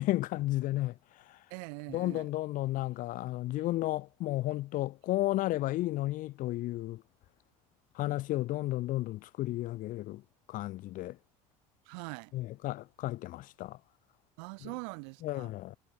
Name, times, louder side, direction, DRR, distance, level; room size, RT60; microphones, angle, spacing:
voice 1, 0.0-1.4 1.9-7.0 7.9-10.2 10.5-11.2 12.3-13.8 14.6-14.7 15.2-15.8, left 16 dB, 60° left, 0.8 m, -33 dB
voice 2, 1.5-2.3 11.8-12.3 14.4-15.5, right 39 dB, 75° right, 1.5 m, -42 dB
supercardioid pair, 85°, 16 cm